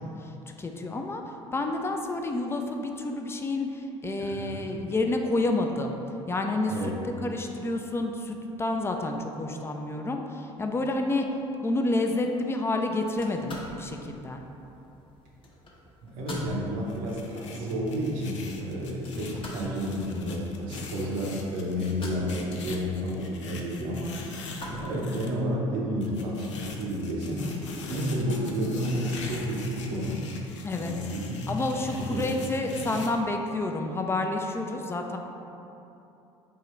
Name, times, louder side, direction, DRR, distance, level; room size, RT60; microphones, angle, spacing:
voice 1, 0.2-6.0 6.3-6.9 7.2-11.3 11.6-14.4 30.6-30.9 31.5-35.2, left 2 dB, 15° left, 3 dB, 0.4 m, -29 dB
voice 2, 4.2-4.6 6.7-6.9 16.0-30.3 30.8-32.3, equal, 65° right, -3 dB, 0.9 m, -31 dB
sound 1, 13.1-25.4, left 1 dB, 35° left, 1.0 m, -45 dB
sound 2, 16.9-25.3 26.0-33.1, left 4 dB, 85° left, 0.4 m, -41 dB
3.7 x 2.8 x 4.2 m, 2.9 s
hypercardioid pair, 60°, 15 cm